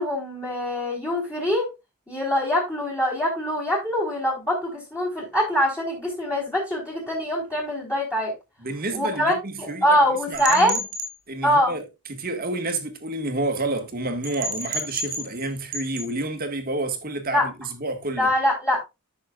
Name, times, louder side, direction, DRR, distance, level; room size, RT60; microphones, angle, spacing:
voice 1, 0.0-1.7 2.1-8.3 8.9-10.7 11.4-11.7 17.3-17.5 18.1-18.8, equal, 15° left, 4.1 m, -23 dB
voice 2, 8.6-10.0 10.3-10.8 11.3-11.8 12.1-18.3, right 2 dB, 40° right, 1.8 m, -29 dB
sound 1, 10.3-11.1 14.2-15.4 15.7-16.1, right 1 dB, 85° right, 2.2 m, -30 dB
14.0 x 6.3 x 2.4 m
head